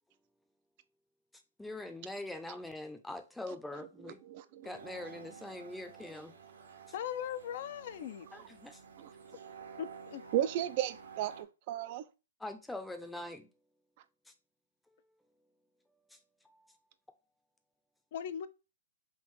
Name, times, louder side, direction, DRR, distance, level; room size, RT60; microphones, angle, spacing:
voice 1, 1.6-4.2 4.6-6.3 8.3-8.8 12.4-13.5 14.3-14.4 14.9-15.0 16.1-16.2 16.4-16.8, left 2 dB, 5° left, 0.5 m, -43 dB
voice 2, 4.3-4.7 9.0-9.1 10.3-12.0, right 12 dB, 40° right, 0.3 m, -34 dB
sound 1, 4.6-11.4, right 6 dB, 80° right, 1.2 m, -52 dB
voice 3, 6.9-8.3 9.8-10.2 18.1-18.5, left 9 dB, 50° left, 0.4 m, -39 dB
3.7 x 2.5 x 4.5 m
hypercardioid pair, 140°, 0 cm